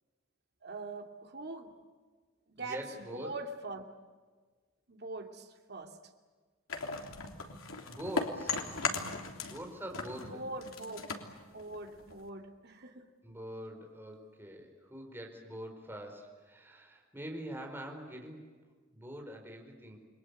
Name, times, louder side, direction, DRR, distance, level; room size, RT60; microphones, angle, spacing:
voice 1, 0.6-1.7 2.5-3.8 4.9-6.0 10.2-11.0 11.5-13.1, right 2 dB, 50° right, 4 dB, 2.6 m, -43 dB
voice 2, 2.6-3.3 7.8-8.8 9.4-10.4 13.2-18.5 18.8-20.0, equal, 10° right, 2 dB, 4.7 m, -44 dB
sound 1, 6.7-9.6 9.9-12.3, left 4 dB, 90° left, 3.2 m, -37 dB
29.0 x 22.5 x 8.3 m, 1.4 s
head